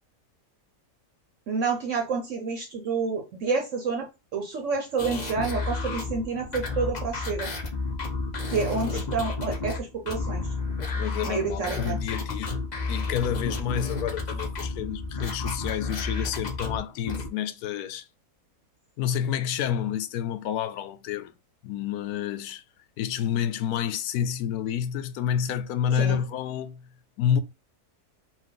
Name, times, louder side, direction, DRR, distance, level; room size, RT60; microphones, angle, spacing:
voice 1, 1.5-7.5 8.5-10.5 11.2-12.0 26.0-26.2, right 4 dB, 60° right, 1.0 m, -29 dB
sound 1, 5.0-17.3, left 3 dB, 35° left, 0.9 m, -31 dB
voice 2, 10.8-18.1 19.0-21.3 21.6-22.6 23.0-26.9 27.2-27.4, left 9 dB, 90° left, 1.1 m, -29 dB
4.3 x 2.5 x 3.8 m
omnidirectional pair, 1.5 m